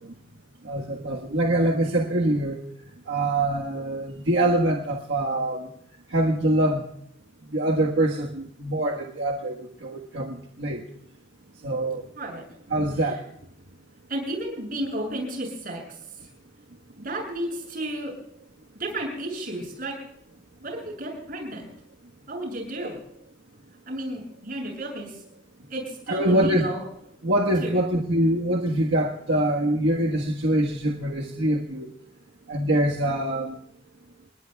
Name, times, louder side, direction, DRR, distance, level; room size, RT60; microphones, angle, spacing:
voice 1, 0.6-2.6 3.1-5.7 6.1-6.8 7.5-10.8 11.6-12.0 12.7-13.2 22.8-22.9 26.1-26.7 27.2-31.9 32.5-33.6, right 1 dB, 85° right, 0 dB, 1.5 m, -24 dB
voice 2, 14.1-15.8 16.2-16.3 17.0-18.1 18.8-19.9 20.6-21.7 22.3-23.0 23.9-25.2 25.7-26.8 27.6-27.8, right 1 dB, 50° right, 0 dB, 7.7 m, -32 dB
29.5 x 19.5 x 2.3 m, 0.73 s
head